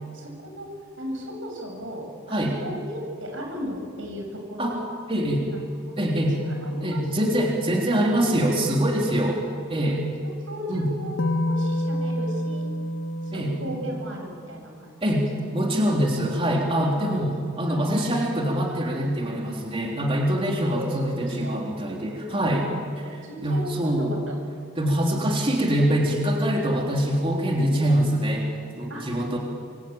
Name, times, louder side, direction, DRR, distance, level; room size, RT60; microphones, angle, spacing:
voice 1, 0.1-0.7 1.0-4.8 5.4-5.6 5.8-7.3 10.5-11.2 11.5-12.7 13.2-15.0 17.6-18.0 20.6-21.7 23.0-24.4 25.0-25.2 28.9-29.4, equal, 90° right, 2 dB, 7.5 m, -36 dB
voice 2, 5.1-5.4 6.0-6.4 6.8-9.4 9.7-10.0 10.7-10.9 13.3-13.5 15.0-23.0 23.4-24.2 24.8-28.5 28.8-29.4, equal, 30° right, -1 dB, 3.5 m, -24 dB
sound 1, 6.4-8.7 11.2-14.1, left 1 dB, 85° left, 1.5 m, -30 dB
27.0 x 23.5 x 8.9 m, 2.2 s
head